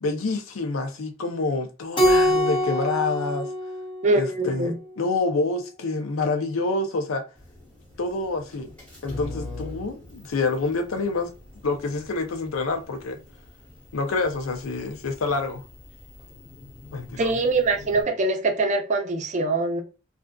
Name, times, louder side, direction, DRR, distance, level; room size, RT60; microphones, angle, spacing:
voice 1, 0.0-3.5 4.1-7.2 8.0-8.7 9.0-11.3 11.6-13.2 13.9-15.6 16.9-17.3, left 3 dB, 90° left, 0.5 m, -27 dB
Keyboard (musical), 2.0-4.6, equal, 25° left, 0.5 m, -24 dB
voice 2, 4.0-4.7 17.2-19.8, right 3 dB, 35° right, 0.4 m, -23 dB
sound 1, 7.4-18.0, left 2 dB, 5° left, 0.9 m, -44 dB
2.5 x 2.4 x 2.2 m
head